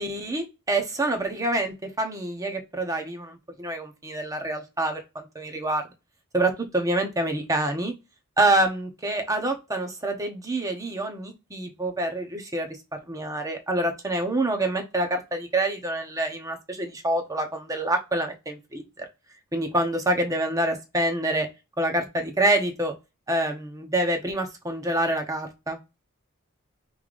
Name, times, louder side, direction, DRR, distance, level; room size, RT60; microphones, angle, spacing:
voice 1, 0.0-5.8 6.3-7.9 8.4-19.0 19.5-21.5 21.8-22.9 23.3-25.8, right 1 dB, 15° right, 4 dB, 0.9 m, -27 dB
5.6 x 3.2 x 2.5 m, 0.24 s
head